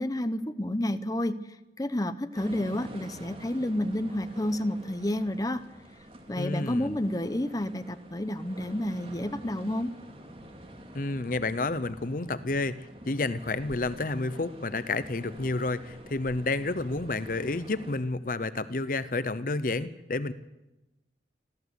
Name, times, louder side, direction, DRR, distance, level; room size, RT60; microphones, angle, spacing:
voice 1, 0.0-1.5 1.8-5.6 6.3-9.9, left 1 dB, 20° left, 11 dB, 0.8 m, -30 dB
sound 1, 2.3-18.0, right 1 dB, 30° right, 2.6 m, -47 dB
voice 2, 6.4-7.0 10.9-20.3, left 2 dB, 50° left, 14 dB, 0.7 m, -30 dB
26.5 x 14.0 x 8.3 m, 1.0 s
head